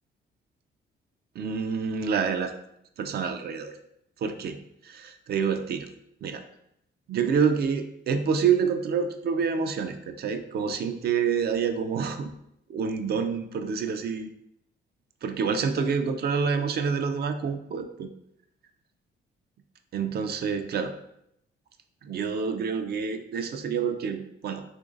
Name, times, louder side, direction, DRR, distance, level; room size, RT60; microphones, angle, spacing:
voice 1, 1.4-2.5 3.0-3.7 4.2-4.6 4.8-5.9 6.2-6.4 7.1-12.3 12.7-14.3 15.2-18.1 19.9-20.9 22.0-24.6, right 6 dB, 55° right, 7 dB, 0.4 m, -27 dB
3.0 x 2.5 x 3.7 m, 0.79 s
cardioid pair, 90°, 20 cm